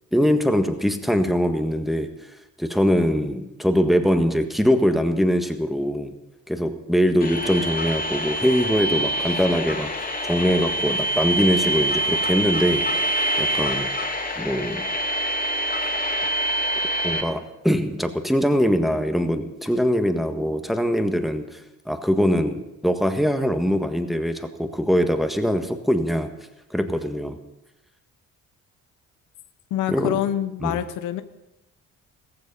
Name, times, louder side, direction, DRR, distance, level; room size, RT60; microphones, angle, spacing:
voice 1, 0.1-2.1 2.6-6.1 6.5-9.9 10.2-13.0 13.4-13.9 14.4-14.8 17.0-26.3 26.7-27.4 29.9-30.2 30.6-30.8, equal, ahead, 7 dB, 1.5 m, -22 dB
sound 1, 7.2-17.2, right 1 dB, 30° left, 2.6 m, -25 dB
voice 2, 29.7-31.2, left 11 dB, 90° left, 11 dB, 1.0 m, -26 dB
15.5 x 14.5 x 5.5 m, 0.93 s
cardioid pair, 90°, 30 cm